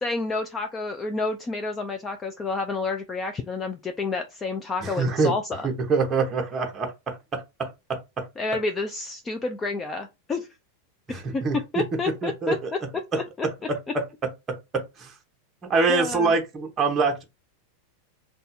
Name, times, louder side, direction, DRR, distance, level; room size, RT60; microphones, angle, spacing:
voice 1, 0.0-5.7 8.4-10.5 11.1-11.4 11.7-12.6 13.1-13.2 15.9-16.3, left 3 dB, 15° left, 0.4 m, -29 dB
voice 2, 4.8-5.3 5.6-8.3 11.1-11.8 12.2-12.7 13.1-13.2 13.7-14.0 14.5-15.1 15.7-17.2, right 4 dB, 20° right, 0.9 m, -25 dB
2.6 x 2.3 x 4.1 m
supercardioid pair, 150°, 0 cm